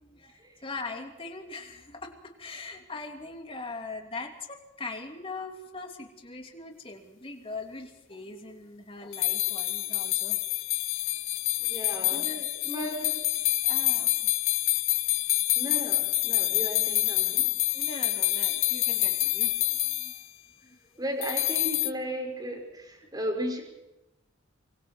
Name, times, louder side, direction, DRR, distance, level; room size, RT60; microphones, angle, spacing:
voice 1, 0.0-10.4 12.0-13.2 13.6-14.3 17.7-20.1 20.6-20.8, left 3 dB, 30° left, 3 dB, 3.0 m, -41 dB
sound 1, 9.1-20.2 21.2-21.9, left 17 dB, 85° left, 0.8 m, -27 dB
voice 2, 11.6-12.3 12.7-12.9 15.6-17.5 21.0-23.6, equal, 20° right, 3 dB, 5.8 m, -35 dB
26.0 x 24.0 x 4.6 m, 0.95 s
head